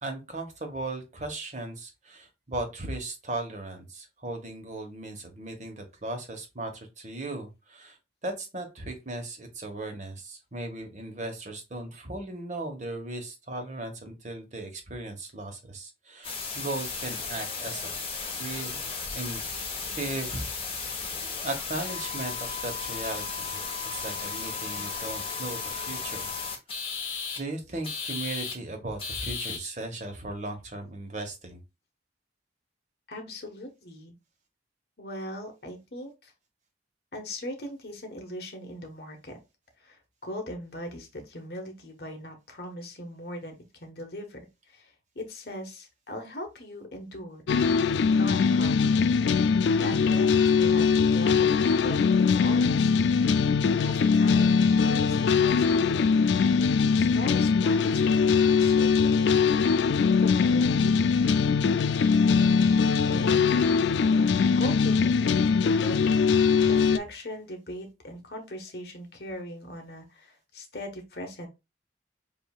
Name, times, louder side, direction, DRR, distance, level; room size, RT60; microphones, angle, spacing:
voice 1, 0.0-8.0 8.2-17.9 18.4-18.8 19.1-19.4 19.9-20.5 21.4-23.6 23.9-26.3 27.4-31.6, right 2 dB, 40° right, 5 dB, 1.2 m, -37 dB
sound 1, 16.2-27.4 27.8-28.5 29.0-29.6, left 5 dB, 30° left, 1.4 m, -34 dB
voice 2, 33.1-34.1 35.0-36.3 37.1-39.4 39.8-44.4 44.7-47.4 48.2-49.0 49.8-52.9 53.8-56.2 56.9-59.2 59.8-61.3 63.0-66.0 66.7-71.5, left 1 dB, 65° left, 3 dB, 1.2 m, -40 dB
sound 2, 47.5-67.0, left 5 dB, 85° left, 0.3 m, -22 dB
7.1 x 2.8 x 2.4 m, 0.25 s
head